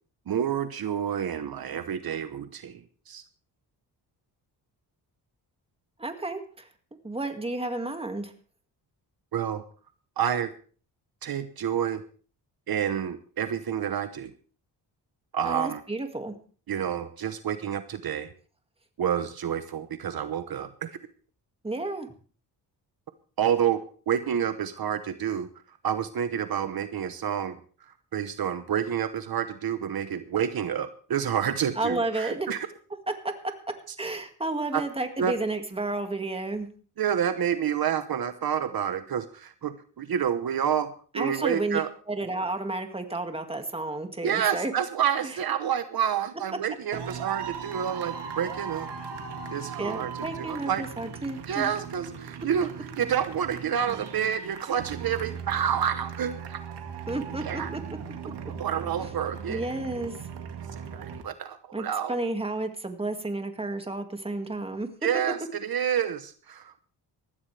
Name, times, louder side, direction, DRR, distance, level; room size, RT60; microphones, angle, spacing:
voice 1, 0.3-3.2 9.3-9.6 10.2-10.5 11.2-12.0 12.7-14.3 15.3-15.8 16.7-18.3 19.0-21.0 23.4-32.6 34.7-34.8 35.2-35.4 37.0-41.9 44.2-48.9 49.5-50.9 51.5-56.6 57.4-57.7 58.6-59.7 60.8-62.2 65.0-66.8, right 9 dB, 60° right, 10 dB, 1.1 m, -29 dB
voice 2, 6.0-6.6 7.0-8.3 15.4-16.4 21.6-22.1 31.8-32.5 33.2-33.3 34.0-36.7 41.2-41.8 42.1-44.7 49.8-51.7 57.1-57.6 59.5-60.2 61.7-64.9, right 2 dB, 15° right, 6 dB, 2.1 m, -31 dB
sound 1, 46.9-61.2, right 7 dB, 80° right, 2.2 m, -38 dB
20.0 x 14.5 x 3.4 m, 0.40 s
cardioid pair, 105°, 41 cm